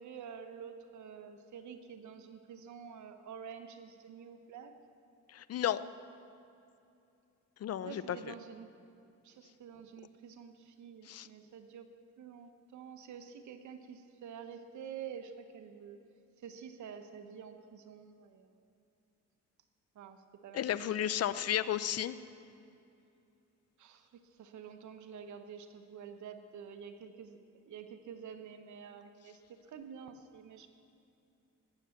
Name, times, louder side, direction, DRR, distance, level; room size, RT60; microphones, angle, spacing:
voice 1, 0.0-4.7 7.9-8.7 9.2-11.9 12.2-16.0 16.4-18.5 19.9-21.3 23.8-30.7, right 7 dB, 70° right, 8 dB, 1.1 m, -49 dB
voice 2, 5.3-5.8 7.6-8.2 11.1-11.3 20.5-22.2, left 11 dB, 55° left, 15 dB, 0.6 m, -33 dB
18.5 x 8.9 x 7.2 m, 2.7 s
cardioid pair, 90°, 30 cm